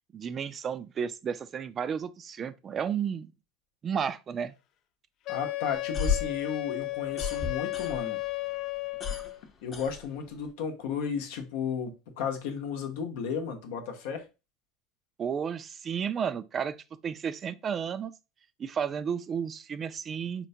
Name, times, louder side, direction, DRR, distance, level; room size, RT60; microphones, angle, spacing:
voice 1, 0.1-3.3 3.8-4.5 15.2-16.8 17.0-18.1 18.6-20.5, right 7 dB, 35° right, 0.3 m, -32 dB
voice 2, 5.3-8.2 9.6-14.3, left 6 dB, 80° left, 0.8 m, -34 dB
Wind instrument woodwind instrument, 5.3-9.4, left 22 dB, 55° left, 0.4 m, -34 dB
sound 1, 5.7-8.3 8.6-10.5, left 6 dB, 35° left, 0.7 m, -33 dB
4.4 x 2.2 x 2.7 m
supercardioid pair, 110°, 0 cm